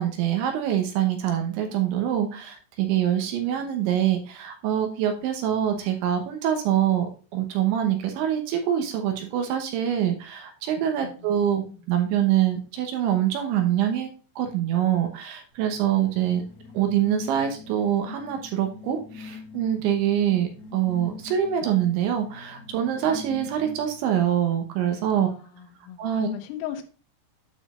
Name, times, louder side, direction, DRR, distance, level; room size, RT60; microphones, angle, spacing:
voice 1, 0.0-14.1 14.4-16.4 16.7-25.3 26.0-26.3, right 10 dB, 75° right, 3.1 m, -25 dB
voice 2, 11.0-11.8 25.2-26.8, left 12 dB, 80° left, 3.5 m, -37 dB
sound 1, 15.5-24.1, left 5 dB, 65° left, 2.5 m, -43 dB
9.2 x 6.9 x 2.4 m
omnidirectional pair, 6.0 m